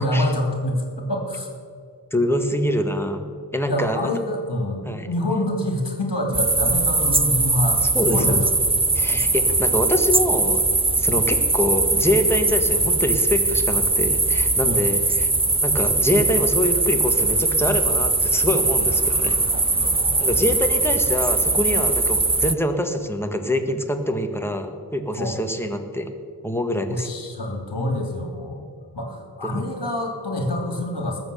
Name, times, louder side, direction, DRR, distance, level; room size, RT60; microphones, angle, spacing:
voice 1, 0.0-1.5 3.7-7.8 8.0-8.4 9.1-9.2 14.6-14.8 19.0-19.2 19.5-20.3 25.2-25.4 26.9-28.6 28.9-31.2, left 1 dB, 50° left, 2 dB, 2.6 m, -26 dB
voice 2, 2.1-3.2 3.5-4.0 4.8-5.1 7.9-8.4 8.9-10.6 11.0-15.3 15.6-19.4 20.2-26.1 26.4-27.1 29.4-29.6, left 1 dB, 5° left, 5 dB, 1.6 m, -24 dB
sound 1, 6.3-22.5, right 3 dB, 15° right, 0.4 m, -21 dB
20.0 x 7.9 x 6.9 m, 2.2 s
wide cardioid pair, 80°, 47 cm